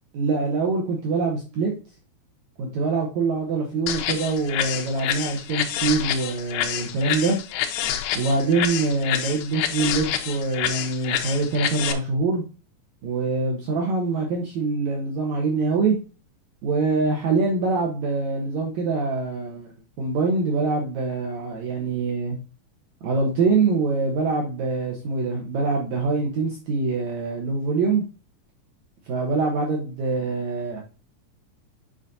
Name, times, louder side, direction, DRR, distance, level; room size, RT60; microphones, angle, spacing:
voice 1, 0.1-1.7 2.6-7.4 8.2-12.4 13.0-16.0 16.6-19.7 20.0-22.4 23.0-28.0 29.1-30.8, right 3 dB, 65° right, 0 dB, 2.1 m, -24 dB
sound 1, 3.9-11.9, left 10 dB, 85° left, 2.5 m, -28 dB
7.7 x 5.0 x 2.6 m, 0.31 s
omnidirectional pair, 4.0 m